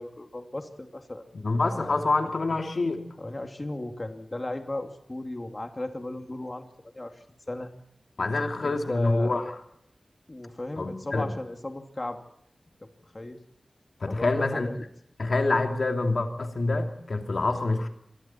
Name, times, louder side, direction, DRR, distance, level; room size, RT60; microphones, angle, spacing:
voice 1, 0.0-1.2 1.8-2.0 3.2-6.7 6.9-7.7 8.6-9.4 10.3-12.2 12.8-12.9 13.1-13.4 14.1-14.8, left 1 dB, 30° left, 5 dB, 2.6 m, -35 dB
voice 2, 1.3-3.1 8.2-9.4 10.8-11.3 14.0-14.7 15.2-17.9, left 3 dB, 70° left, 4 dB, 2.8 m, -26 dB
28.5 x 22.5 x 4.4 m, 0.75 s
wide cardioid pair, 65°, 0 cm